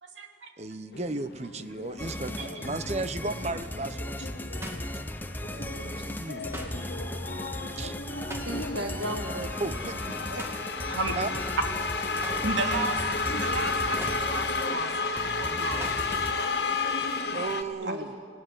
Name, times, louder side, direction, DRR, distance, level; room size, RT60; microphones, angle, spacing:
voice 1, 0.0-0.5 2.4-2.5 10.9-11.2 12.4-17.0 17.8-17.9, right 2 dB, 90° right, 3 dB, 2.9 m, -34 dB
voice 2, 0.6-4.2 5.5-6.9 7.8-8.0 9.6-10.0 11.1-11.3 17.3-18.1, right 3 dB, 35° right, 11 dB, 0.9 m, -35 dB
sound 1, 0.9-17.6, left 4 dB, 60° left, 1.3 m, -33 dB
sound 2, 2.0-16.3, left 1 dB, 10° left, 0.8 m, -37 dB
sound 3, 4.6-5.7 6.0-8.9 9.2-9.5 9.8-11.8 12.1-16.4 16.7-17.6, right 1 dB, 15° right, 2.3 m, -45 dB
voice 3, 8.5-9.6 10.3-10.4 17.1-17.5 17.8-18.2, equal, 75° right, 2 dB, 1.7 m, -35 dB
25.5 x 18.0 x 9.8 m, 2.1 s
head